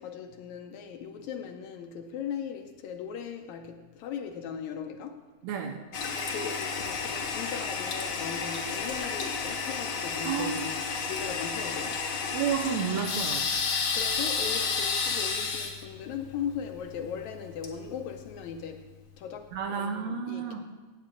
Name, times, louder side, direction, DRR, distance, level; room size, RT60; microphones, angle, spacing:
voice 1, 0.0-5.3 6.0-12.0 13.9-18.9 19.2-20.7, left 7 dB, 75° left, 1.9 m, -38 dB
voice 2, 5.4-5.8 10.3-10.6 12.3-13.5 19.5-20.7, right 7 dB, 75° right, 1.9 m, -31 dB
Toilet flush, 5.9-18.6, left 5 dB, 60° left, 1.5 m, -32 dB
16.5 x 8.2 x 3.8 m
omnidirectional pair, 3.6 m